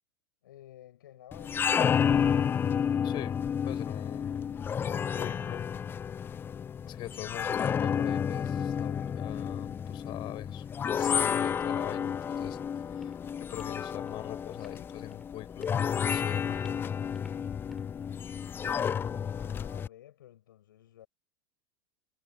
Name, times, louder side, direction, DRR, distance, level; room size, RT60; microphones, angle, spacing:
voice 1, 0.4-2.2 19.3-21.1, left 12 dB, 70° left, 7.2 m, -53 dB
sound 1, 1.3-19.9, left 7 dB, 20° left, 0.3 m, -31 dB
voice 2, 3.0-3.4 3.6-5.7 6.9-12.6 12.9-16.8, left 16 dB, 40° left, 4.5 m, -43 dB
Walk footsteps, 13.0-19.8, left 1 dB, 5° left, 6.1 m, -60 dB
figure-of-eight pair, 90°, 12 cm